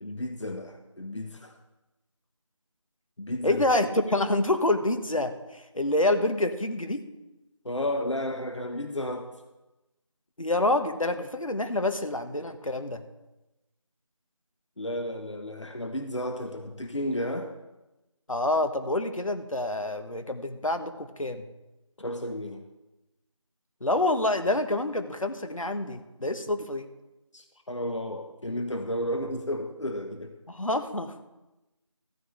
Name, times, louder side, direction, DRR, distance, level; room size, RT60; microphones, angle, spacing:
voice 1, 0.0-1.6 3.2-3.6 7.6-9.4 14.8-17.6 22.0-22.6 27.3-30.3, left 1 dB, 65° left, 6 dB, 1.2 m, -33 dB
voice 2, 3.4-7.0 10.4-13.0 18.3-21.4 23.8-26.9 30.5-31.1, left 2 dB, 85° left, 8 dB, 1.5 m, -27 dB
14.5 x 13.5 x 3.3 m, 1.0 s
figure-of-eight pair, 175°, 17 cm